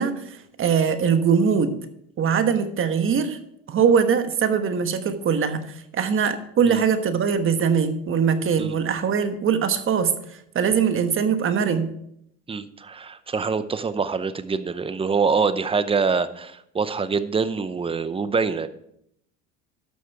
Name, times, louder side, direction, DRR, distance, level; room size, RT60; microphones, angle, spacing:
voice 1, 0.0-1.7 2.2-3.4 3.7-11.9, right 6 dB, 40° right, 9 dB, 1.3 m, -22 dB
voice 2, 12.5-18.7, right 5 dB, 15° right, 13 dB, 0.7 m, -25 dB
12.5 x 6.4 x 4.7 m, 0.72 s
supercardioid pair, 105°, 33 cm